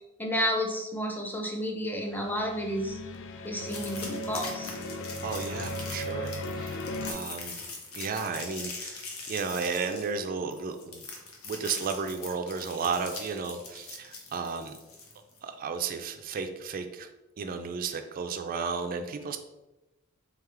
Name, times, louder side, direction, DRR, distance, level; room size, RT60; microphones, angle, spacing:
voice 1, 0.2-3.0 3.4-4.8, equal, 10° left, 1 dB, 0.6 m, -31 dB
sound 1, 2.0-7.1, left 1 dB, 65° left, 0.4 m, -37 dB
sound 2, 3.7-15.4, left 3 dB, 85° left, 0.9 m, -42 dB
voice 2, 5.2-7.6 7.9-9.0 9.3-11.1 11.4-14.7 15.4-17.1 17.4-19.4, right 5 dB, 40° right, 7 dB, 0.3 m, -33 dB
3.6 x 3.5 x 3.3 m, 1.0 s
head